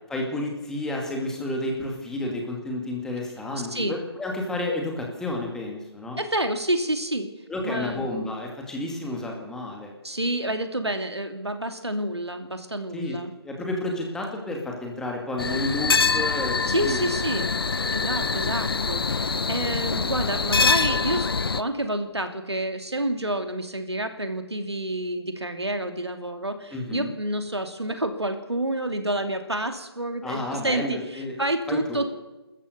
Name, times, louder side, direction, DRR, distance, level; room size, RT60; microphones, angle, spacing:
voice 1, 0.1-6.2 7.5-9.9 12.9-13.2 13.4-17.1 26.7-27.1 30.2-31.4 31.7-32.0, left 1 dB, 5° left, 0 dB, 2.4 m, -31 dB
voice 2, 6.2-7.3 7.6-8.0 10.0-13.3 16.7-17.5 17.9-21.3 21.5-32.1, right 1 dB, 85° right, 6 dB, 2.8 m, -29 dB
sound 1, 15.4-21.6, left 4 dB, 65° left, 0.8 m, -24 dB
27.5 x 14.0 x 6.8 m, 1.1 s
figure-of-eight pair, 145°, 14 cm